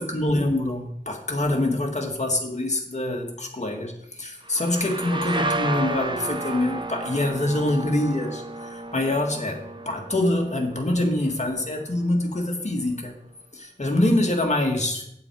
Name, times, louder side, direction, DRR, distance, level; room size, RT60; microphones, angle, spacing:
voice 1, 0.0-13.1 13.5-15.1, left 1 dB, 45° left, 2 dB, 1.8 m, -25 dB
sound 1, 4.4-12.0, right 2 dB, 30° right, 0.9 m, -33 dB
8.2 x 7.5 x 4.7 m, 0.74 s
wide cardioid pair, 55°, 16 cm